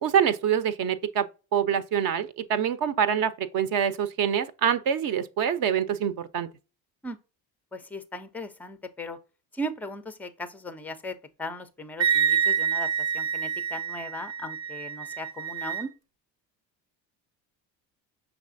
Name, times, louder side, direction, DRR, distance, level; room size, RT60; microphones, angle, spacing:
voice 1, 0.0-6.5, right 8 dB, 45° right, 0.5 m, -25 dB
voice 2, 7.7-9.2 9.5-15.9, equal, 5° left, 0.3 m, -38 dB
Wind instrument woodwind instrument, 12.0-15.8, right 8 dB, 75° right, 0.8 m, -27 dB
5.9 x 3.3 x 2.5 m
hypercardioid pair, 65°, 50 cm